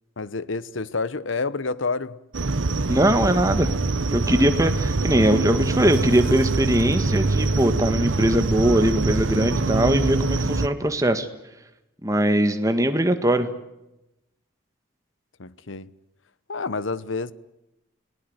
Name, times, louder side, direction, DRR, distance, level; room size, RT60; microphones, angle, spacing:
voice 1, 0.2-2.2 4.3-4.7 10.3-10.5 15.4-15.9 16.5-17.3, left 4 dB, 85° left, 1.0 m, -29 dB
sound 1, 2.3-10.7, right 3 dB, 85° right, 1.0 m, -24 dB
voice 2, 2.9-3.7 4.1-11.3 12.0-13.5, right 1 dB, 15° right, 1.7 m, -21 dB
29.5 x 19.0 x 8.0 m
head